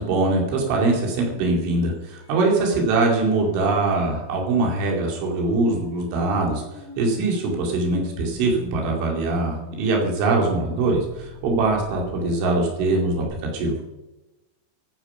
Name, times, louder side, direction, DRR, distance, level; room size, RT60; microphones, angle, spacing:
voice 1, 0.0-6.6 7.0-13.8, right 3 dB, 70° right, 0 dB, 5.0 m, -22 dB
sound 1, 2.1-13.3, left 1 dB, 90° right, 7.8 m, -43 dB
15.0 x 9.5 x 5.6 m, 1.0 s
omnidirectional pair, 5.7 m